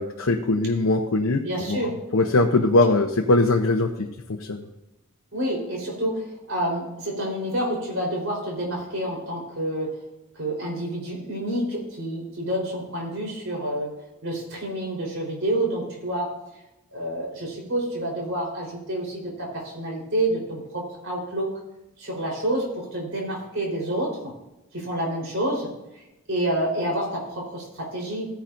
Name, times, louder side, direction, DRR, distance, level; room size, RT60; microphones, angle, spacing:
voice 1, 0.0-1.8 2.1-4.7, left 2 dB, 75° left, 2 dB, 0.8 m, -21 dB
voice 2, 1.4-1.9 5.3-9.9 10.3-13.9 14.2-16.3 16.9-21.5 22.0-24.3 24.7-25.7 26.3-28.3, right 1 dB, 70° right, -2 dB, 4.0 m, -28 dB
15.0 x 10.0 x 2.6 m, 0.93 s
head